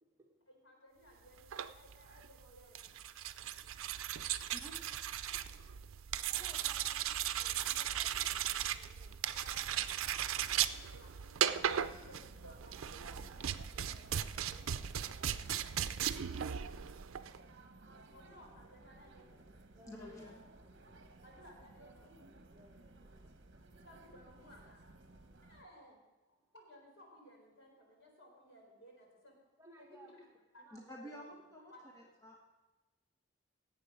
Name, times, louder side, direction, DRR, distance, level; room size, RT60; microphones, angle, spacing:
voice 1, 0.5-3.1 3.5-4.0 6.1-6.3 9.4-9.8 10.4-13.4 18.1-19.4 21.2-22.1 23.8-24.8 25.4-26.0 26.5-29.4 29.8-30.3 30.5-30.6 31.7-31.8, equal, 70° left, 0 dB, 4.2 m, -59 dB
sound 1, 1.4-17.4, right 10 dB, 90° right, 0.5 m, -37 dB
voice 2, 5.3-5.9 6.3-9.2 12.7-15.8 19.7-20.1 20.6-20.7 22.5-23.3 29.6-30.1 30.6-31.6, right 2 dB, 15° right, -1 dB, 1.6 m, -62 dB
sound 2, 11.3-25.6, right 2 dB, 55° right, 1.1 m, -57 dB
voice 3, 19.9-20.4 30.7-32.4, left 1 dB, 15° left, -3 dB, 1.4 m, -50 dB
18.0 x 7.9 x 5.0 m, 1.2 s
head